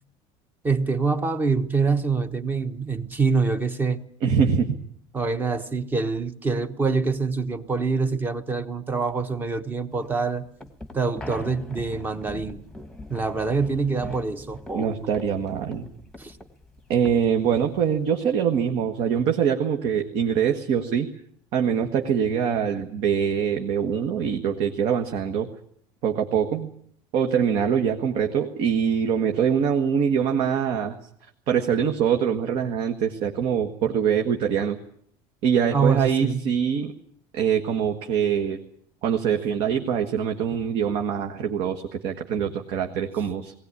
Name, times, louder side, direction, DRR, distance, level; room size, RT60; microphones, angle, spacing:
voice 1, 0.6-4.0 5.1-10.4 10.9-12.6 13.1-15.1 16.2-16.4 35.7-36.5, right 4 dB, 15° right, 1.1 m, -25 dB
voice 2, 4.2-4.8 14.7-15.9 16.9-21.1 21.5-25.5 26.0-26.7 27.1-30.9 31.5-34.8 35.4-36.9 37.3-38.6 39.0-43.5, right 7 dB, 50° right, 1.5 m, -24 dB
sound 1, 10.0-18.1, left 1 dB, 5° left, 1.3 m, -42 dB
19.5 x 17.5 x 9.7 m
cardioid pair, 175°, 12 cm